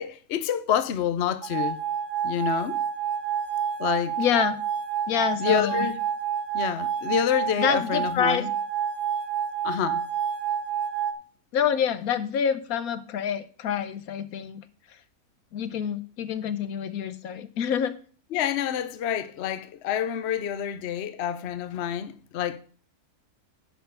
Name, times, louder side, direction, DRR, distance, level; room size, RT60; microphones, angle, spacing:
voice 1, 0.0-1.8 2.2-2.8 3.8-4.1 5.4-6.0 6.5-8.5 9.6-10.0 18.3-22.6, left 9 dB, 55° left, 0.8 m, -28 dB
sound 1, 1.4-11.1, right 8 dB, 85° right, 1.4 m, -28 dB
voice 2, 4.2-4.6 5.1-5.9 7.6-8.5 11.5-14.6 15.5-18.0, left 8 dB, 70° left, 1.1 m, -27 dB
10.5 x 4.4 x 6.7 m
omnidirectional pair, 1.6 m